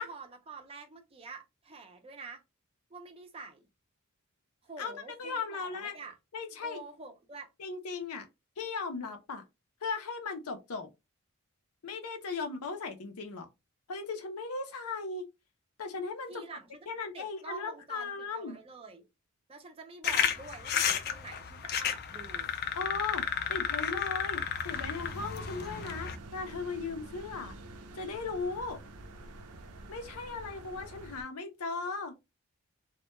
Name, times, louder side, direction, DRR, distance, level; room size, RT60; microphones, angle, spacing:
voice 1, 0.0-2.4 2.9-3.7 4.6-6.2 6.6-7.5 16.3-16.9 17.1-19.1 19.5-22.5, right 3 dB, 25° right, 0.4 m, -47 dB
voice 2, 4.8-5.9 6.3-6.8 7.6-8.3 8.6-9.4 9.8-10.9 11.8-13.5 13.9-15.2 15.8-16.4 16.9-18.6 22.8-27.5 27.9-28.8 29.9-32.1, left 4 dB, 85° left, 0.6 m, -37 dB
sound 1, 20.0-26.1, left 8 dB, 45° left, 0.3 m, -32 dB
sound 2, 24.7-31.2, right 2 dB, 90° right, 0.5 m, -48 dB
2.1 x 2.1 x 2.9 m
head